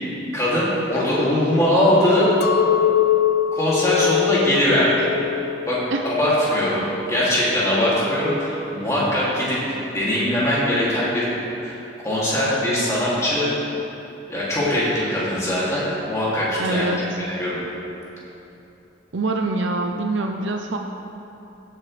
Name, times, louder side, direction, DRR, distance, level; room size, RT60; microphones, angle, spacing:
voice 1, 0.3-2.3 3.5-5.1 5.7-9.6 9.9-11.3 11.6-11.8 12.0-13.5 14.3-16.9 17.4-17.6, left 1 dB, 15° left, -8 dB, 2.5 m, -21 dB
Chink clink, 2.4-6.7 7.1-7.7, left 10 dB, 50° left, 0.4 m, -23 dB
voice 2, 16.6-17.0 19.1-20.8, right 2 dB, 70° right, 3 dB, 0.6 m, -24 dB
16.0 x 7.9 x 3.3 m, 2.9 s
head